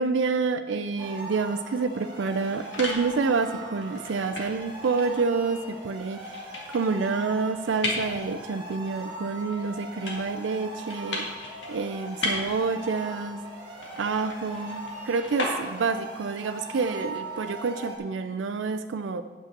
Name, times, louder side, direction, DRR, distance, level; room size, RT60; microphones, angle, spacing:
voice 1, 0.0-6.3 6.7-11.3 11.7-13.4 14.0-19.2, right 4 dB, 80° right, 9 dB, 0.4 m, -28 dB
sound 1, 1.0-18.0, right 1 dB, 25° right, 1.8 m, -40 dB
sound 2, 2.1-16.1, left 2 dB, 70° left, 2.2 m, -37 dB
9.0 x 6.7 x 6.5 m, 1.4 s
head